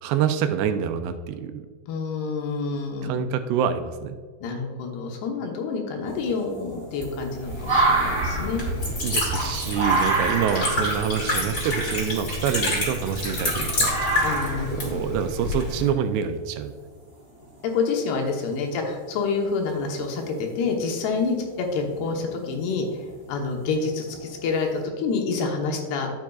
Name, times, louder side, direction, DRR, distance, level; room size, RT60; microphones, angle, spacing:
voice 1, 0.0-1.7 3.0-4.2 9.0-13.9 14.7-16.7 18.6-18.8, right 8 dB, 85° right, 8 dB, 2.6 m, -26 dB
voice 2, 1.9-3.2 4.4-8.6 14.2-15.0 17.6-26.1, left 4 dB, 75° left, 2 dB, 3.0 m, -28 dB
Fox screaming in the night, 6.1-13.4 13.8-14.8 16.1-16.2 17.5-17.6 20.2-20.5 20.9-21.3 21.9-22.5 23.1-23.2 24.2-24.3 24.7-24.8, right 3 dB, 15° right, 1.0 m, -27 dB
Liquid, 7.3-15.9, left 1 dB, 30° left, 1.8 m, -28 dB
11.5 x 7.3 x 2.4 m, 1.5 s
omnidirectional pair, 4.9 m